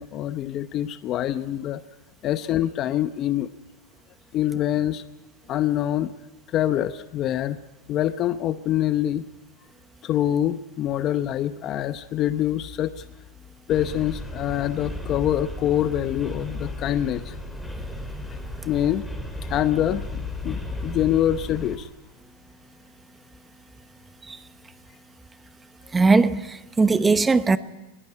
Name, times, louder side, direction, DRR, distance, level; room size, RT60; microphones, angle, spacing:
voice 1, 0.0-1.8 2.2-3.5 4.3-5.0 5.5-6.1 6.5-7.6 7.9-9.3 10.0-13.0 13.7-17.3 18.6-19.1 19.4-21.9, left 12 dB, 40° left, 0.8 m, -25 dB
sound 1, 13.7-21.8, left 1 dB, 5° left, 3.4 m, -35 dB
voice 2, 25.9-27.6, right 4 dB, 15° right, 0.8 m, -19 dB
21.0 x 15.5 x 10.0 m
supercardioid pair, 125°, 0 cm